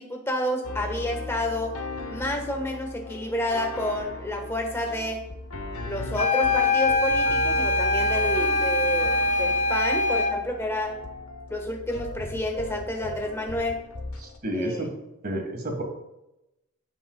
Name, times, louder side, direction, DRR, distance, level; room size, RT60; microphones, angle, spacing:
voice 1, 0.0-1.7 2.1-5.2 5.8-10.9 11.5-13.8 14.5-14.9, left 1 dB, 10° left, 2 dB, 1.3 m, -29 dB
sound 1, 0.6-14.4, left 2 dB, 85° left, 0.9 m, -37 dB
sound 2, 6.1-10.4, left 2 dB, 35° left, 1.1 m, -23 dB
voice 2, 14.2-14.9 15.2-15.8, right 1 dB, 45° right, 2 dB, 1.7 m, -30 dB
16.0 x 5.5 x 2.3 m, 0.91 s
head